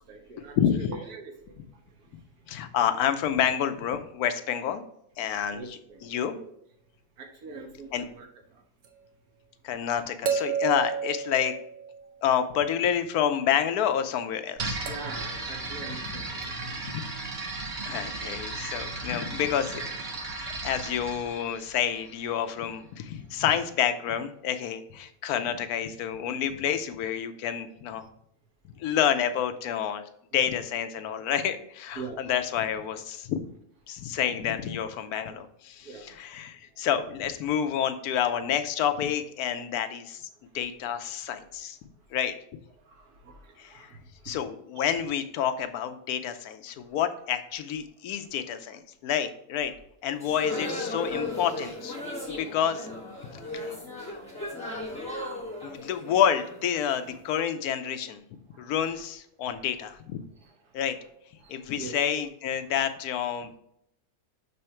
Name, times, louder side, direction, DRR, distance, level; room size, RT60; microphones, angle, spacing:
voice 1, 0.0-2.6 5.5-6.5 7.2-8.6 14.9-17.1 17.9-18.1 20.3-20.6 23.2-23.4 30.3-30.5 31.9-32.3 35.8-36.3 36.7-36.9 39.5-39.6 42.8-44.4 44.8-44.9 51.0-51.3 51.5-51.7 52.1-52.4 53.2-56.1 57.1-57.2 58.5-59.0 59.5-59.7 60.3-60.8 61.4-62.2, right 4 dB, 85° right, 2 dB, 1.7 m, -46 dB
voice 2, 0.6-0.9 2.5-4.8 5.2-6.4 7.9-8.1 9.6-11.5 12.2-14.8 16.1-16.2 16.9-17.0 17.8-19.9 20.6-28.1 28.8-30.0 30.3-33.4 33.9-40.3 40.5-41.8 42.1-42.3 43.6-43.9 44.2-49.7 50.0-52.0 52.3-52.9 53.3-53.7 55.6-58.2 58.6-60.2 60.7-61.0 61.5-63.6, left 9 dB, 85° left, 9 dB, 1.1 m, -29 dB
sound 1, 8.8-8.9 10.3-12.3 14.9-15.3 16.4-16.5, right 6 dB, 65° right, 1.1 m, -31 dB
sound 2, 14.6-22.4, right 3 dB, 35° right, 1.1 m, -36 dB
sound 3, 50.2-57.1, left 2 dB, 5° left, 1.5 m, -36 dB
6.7 x 3.5 x 4.4 m, 0.74 s
omnidirectional pair, 1.6 m